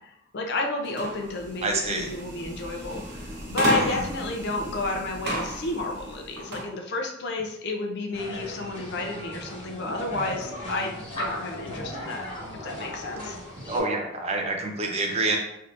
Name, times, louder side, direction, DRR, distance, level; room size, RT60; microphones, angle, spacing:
voice 1, 0.0-12.3 12.6-13.4, left 2 dB, 50° left, 2 dB, 0.5 m, -31 dB
sound 1, 0.8-6.7, equal, 50° right, 0.8 m, -33 dB
voice 2, 1.6-2.1 3.8-4.1 13.7-15.4, right 2 dB, 30° right, 2 dB, 0.4 m, -27 dB
sound 2, 8.1-13.8, left 1 dB, 20° left, 1.1 m, -36 dB
3.4 x 2.7 x 2.5 m, 0.82 s
head